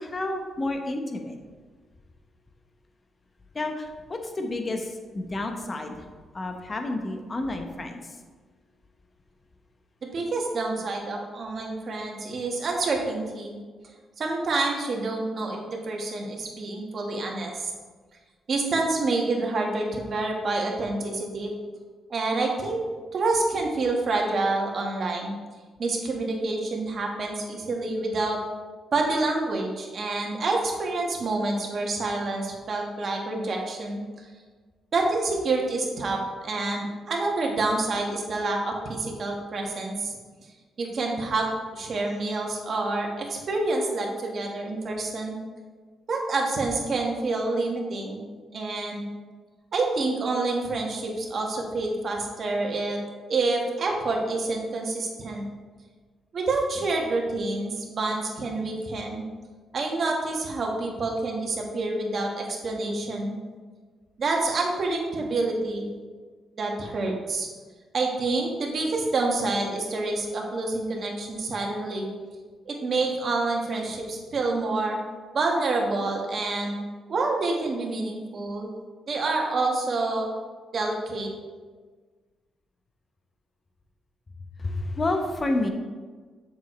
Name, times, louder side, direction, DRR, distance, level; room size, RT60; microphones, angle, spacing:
voice 1, 0.0-1.4 3.5-6.0 6.3-8.2 84.6-85.7, left 2 dB, 30° left, 5 dB, 1.0 m, -30 dB
voice 2, 10.0-13.6 14.2-17.7 18.5-21.5 22.1-22.8 23.1-25.3 25.8-28.4 28.9-34.0 34.9-40.2 40.8-45.4 46.1-48.3 48.5-49.1 49.7-53.0 53.3-55.4 56.3-59.2 59.7-63.4 64.2-65.9 66.5-67.5 67.9-72.1 72.6-75.0 75.3-76.8 77.1-78.7 79.1-80.3 80.7-81.3, right 3 dB, 55° right, 0 dB, 1.5 m, -27 dB
7.2 x 6.4 x 3.2 m, 1.4 s
cardioid pair, 90°, 0 cm